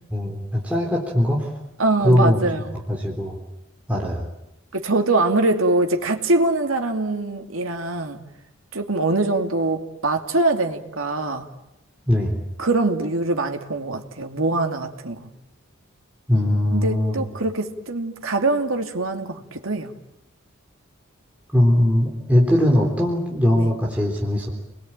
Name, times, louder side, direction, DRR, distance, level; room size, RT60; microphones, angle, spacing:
voice 1, 0.1-1.5 2.0-2.5 2.9-3.4 3.9-4.2 12.1-12.4 16.3-17.3 21.5-24.5, left 1 dB, 5° right, -3 dB, 3.8 m, -20 dB
voice 2, 1.8-2.8 4.7-8.2 8.7-11.5 12.6-15.3 16.7-19.9 23.6-23.7, right 2 dB, 90° right, 4 dB, 2.6 m, -23 dB
30.0 x 21.5 x 9.0 m, 0.85 s
head